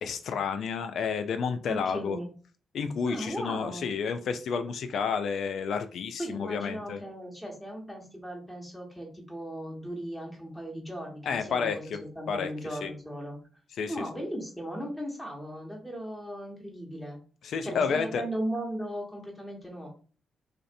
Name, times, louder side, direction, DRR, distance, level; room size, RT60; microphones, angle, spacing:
voice 1, 0.0-2.2 2.7-7.0 11.2-12.0 12.3-12.9 13.8-14.0 17.4-18.2, left 6 dB, 70° left, 9 dB, 0.3 m, -31 dB
voice 2, 1.7-2.3 3.1-3.9 6.2-13.4 13.9-17.2 17.6-19.9, equal, 5° left, -2 dB, 1.2 m, -37 dB
2.4 x 2.1 x 2.6 m, 0.38 s
hypercardioid pair, 45°, 0 cm